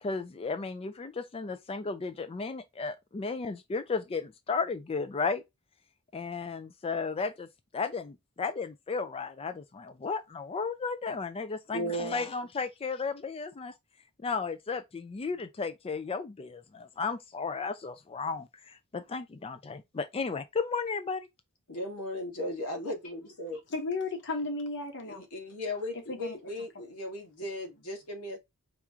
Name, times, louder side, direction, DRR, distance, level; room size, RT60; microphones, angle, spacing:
voice 1, 0.0-5.4 6.1-7.5 7.7-13.7 14.2-21.3, left 4 dB, 25° left, 0.4 m, -34 dB
voice 2, 11.7-12.3 21.7-23.6 25.0-28.4, equal, 90° left, 1.8 m, -36 dB
voice 3, 23.7-25.2 26.1-26.4, left 3 dB, 55° left, 1.2 m, -34 dB
4.7 x 3.0 x 3.6 m
head